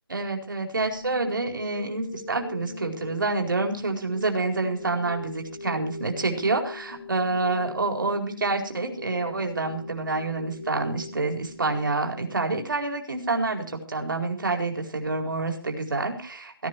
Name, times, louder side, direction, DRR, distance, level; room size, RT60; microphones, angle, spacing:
voice 1, 0.1-16.7, right 3 dB, 55° right, 3 dB, 4.4 m, -28 dB
sound 1, 0.8-12.8, left 2 dB, 65° left, 3.6 m, -41 dB
17.0 x 12.0 x 4.7 m, 0.39 s
hypercardioid pair, 175°, 13 cm